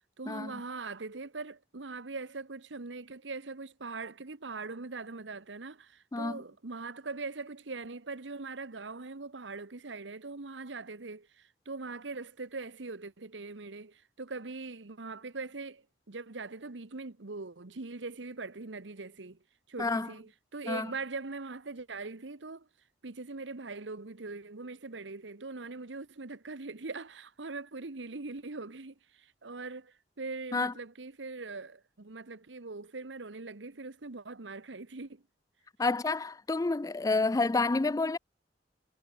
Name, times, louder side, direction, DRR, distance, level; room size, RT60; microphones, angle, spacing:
voice 1, 0.2-19.4 19.7-22.7 23.0-35.2 37.2-37.4, right 3 dB, 85° right, 1.2 m, -41 dB
voice 2, 6.1-6.4 19.8-20.1 20.7-20.9 30.5-30.7 35.8-38.2, left 3 dB, 20° left, 0.4 m, -29 dB
head